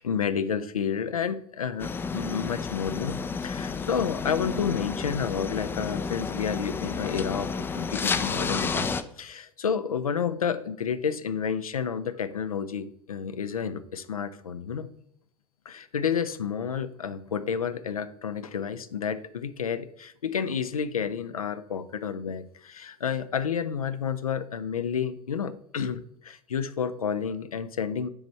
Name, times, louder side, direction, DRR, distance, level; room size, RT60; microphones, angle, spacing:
voice 1, 0.0-8.9 9.2-14.9 15.7-28.1, left 7 dB, 80° left, 14 dB, 0.4 m, -30 dB
sound 1, 1.8-9.0, left 5 dB, 10° left, 0.3 m, -31 dB
7.0 x 3.5 x 4.2 m, 0.69 s
figure-of-eight pair, 80°, 18 cm